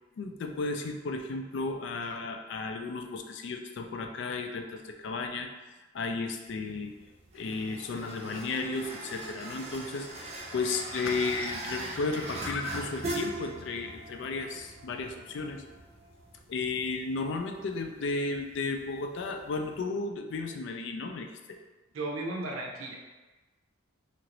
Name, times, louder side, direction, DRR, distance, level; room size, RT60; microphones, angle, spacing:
voice 1, 0.2-5.5 5.9-6.9 7.3-15.6 16.5-21.6, left 3 dB, 60° left, 5 dB, 0.3 m, -34 dB
sound 1, 6.5-19.8, right 1 dB, 30° right, 0.4 m, -41 dB
voice 2, 21.9-23.0, right 2 dB, 85° right, 0 dB, 0.6 m, -35 dB
2.9 x 2.5 x 2.9 m, 1.2 s
head